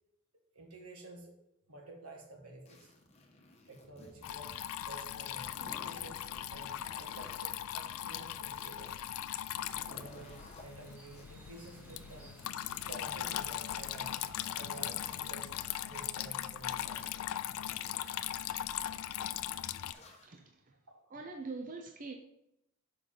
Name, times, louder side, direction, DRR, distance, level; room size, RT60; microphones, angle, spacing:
voice 1, 0.5-1.3 1.7-2.9 3.7-4.5 4.8-8.9 9.9-12.4 12.9-14.2 14.5-15.5 15.8-17.1 20.2-20.3 20.9-21.1, right 2 dB, 85° right, 1 dB, 1.6 m, -51 dB
sound 1, 2.7-4.7 5.0-7.3 7.7-8.9 9.3-10.6 11.1-14.4 14.8-16.0 16.5-17.1 17.7-18.2 18.8-19.3 19.8-20.3, left 2 dB, 30° left, 0.9 m, -57 dB
Water tap faucet / Trickle dribble, 4.2-19.9, left 11 dB, 75° left, 0.3 m, -39 dB
sound 2, 9.8-14.8, equal, 10° right, 1.1 m, -59 dB
voice 2, 20.1-20.7 21.1-22.1, right 3 dB, 40° right, 3 dB, 0.5 m, -44 dB
6.5 x 5.3 x 3.8 m, 0.83 s
head